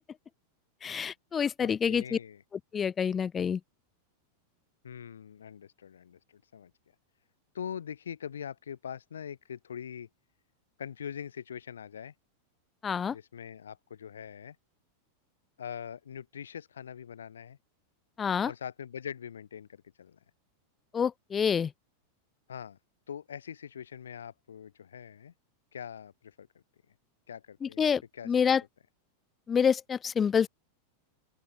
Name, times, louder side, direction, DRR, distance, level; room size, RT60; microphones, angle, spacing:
voice 1, 0.8-2.2 2.7-3.6 12.8-13.1 18.2-18.5 20.9-21.7 27.6-28.6 29.5-30.5, left 7 dB, 20° left, 1.9 m, -27 dB
voice 2, 1.6-2.4 4.8-6.7 7.5-10.1 10.8-12.1 13.1-14.6 15.6-17.6 18.5-20.2 22.5-22.8 23.1-25.3 25.7-26.5 27.3-28.3, left 8 dB, 65° left, 6.9 m, -42 dB
open air
figure-of-eight pair, 90°, 0 cm